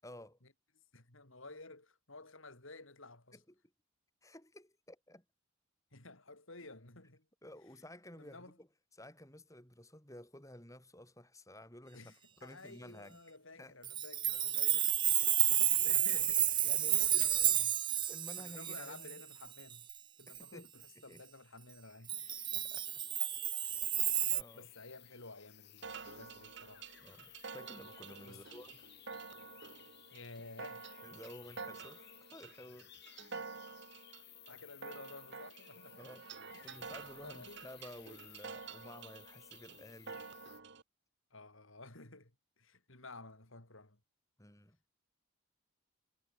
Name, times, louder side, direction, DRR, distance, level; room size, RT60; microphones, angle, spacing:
voice 1, 0.0-0.4 3.3-3.4 4.2-5.2 7.4-8.7 9.0-13.2 13.6-13.7 16.6-17.3 18.1-19.2 20.3-20.7 21.1-21.2 22.5-22.9 23.6-23.8 24.3-24.7 27.0-28.9 31.0-32.0 32.3-33.4 36.0-36.2 36.6-40.2 44.4-44.8, left 1 dB, 15° left, 6.8 m, -53 dB
voice 2, 0.9-3.4 5.9-7.3 8.1-8.6 11.9-14.9 15.2-16.7 17.0-17.8 18.4-19.9 20.2-22.3 24.5-26.9 28.2-28.4 30.1-30.9 34.5-36.1 36.5-36.8 37.2-37.7 41.3-44.0, left 2 dB, 70° left, 4.3 m, -53 dB
Chime, 13.8-19.9 20.3-20.4 22.1-24.4, right 11 dB, 20° right, 0.4 m, -31 dB
sound 1, 22.2-40.6, left 14 dB, 50° left, 5.6 m, -58 dB
sound 2, 25.8-40.8, right 5 dB, 55° right, 1.1 m, -49 dB
head